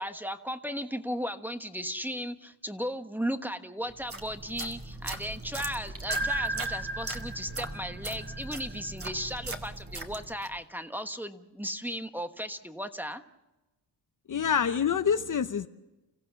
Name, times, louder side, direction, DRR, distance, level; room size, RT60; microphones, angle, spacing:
voice 1, 0.0-13.2, equal, 5° right, 8 dB, 1.2 m, -36 dB
sound 1, 3.9-10.6, right 2 dB, 30° right, 2.3 m, -40 dB
sound 2, 6.1-9.0, right 2 dB, 60° right, 2.0 m, -34 dB
voice 2, 14.3-15.7, left 7 dB, 45° left, 10 dB, 0.8 m, -26 dB
30.0 x 15.5 x 7.0 m, 1.0 s
cardioid pair, 90°, 44 cm